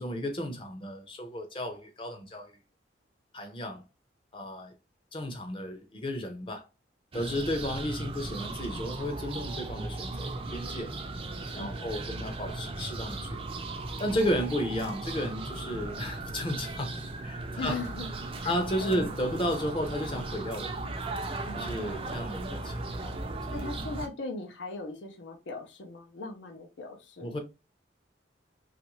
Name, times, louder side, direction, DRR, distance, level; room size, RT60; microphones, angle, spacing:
voice 1, 0.0-2.5 3.3-3.8 4.3-4.7 5.1-6.7 7.1-10.9 11.5-13.4 14.0-17.8 18.4-20.7 21.5-22.7 23.0-23.1 23.5-23.7 27.2-27.4, equal, 30° left, 0.6 m, -33 dB
sound 1, 7.1-24.1, right 2 dB, 30° right, 0.4 m, -37 dB
voice 2, 11.6-11.9 17.6-18.1 18.4-19.1 21.4-22.2 23.5-27.3, left 3 dB, 80° left, 0.6 m, -39 dB
3.1 x 2.5 x 3.0 m
head